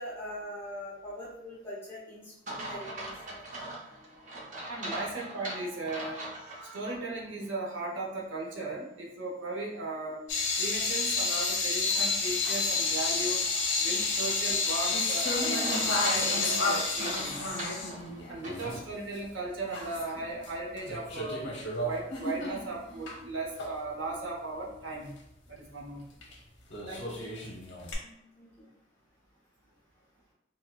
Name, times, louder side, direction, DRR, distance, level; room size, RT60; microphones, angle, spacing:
voice 1, 0.0-3.4 28.0-28.7, equal, 10° left, -6 dB, 0.6 m, -43 dB
sound 1, 2.5-7.0 7.4-7.5 12.4-18.8, right 1 dB, 40° right, 0.6 m, -41 dB
voice 2, 4.7-6.3 6.7-10.2 10.6-13.5 13.8-17.5 18.3-21.5 21.8-25.1 25.5-26.0 26.9-27.2, right 2 dB, 75° right, -2 dB, 0.8 m, -37 dB
sound 2, 10.3-18.9 19.2-19.3 19.7-20.5 20.8-23.1 23.6-23.7 26.2-26.3 26.7-27.9, left 3 dB, 80° left, 0.8 m, -30 dB
4.3 x 2.1 x 2.3 m, 0.81 s
head